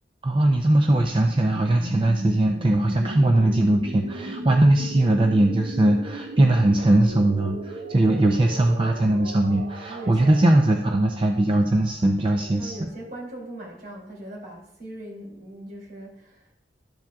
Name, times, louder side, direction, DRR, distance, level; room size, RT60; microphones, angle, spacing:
voice 1, 0.2-12.8, right 1 dB, 30° right, 3 dB, 0.5 m, -20 dB
sound 1, 1.2-13.0, right 1 dB, 75° right, 1.0 m, -36 dB
voice 2, 9.6-10.4 12.3-16.5, right 1 dB, 55° right, -3 dB, 2.7 m, -40 dB
12.0 x 7.3 x 2.3 m, 0.75 s
head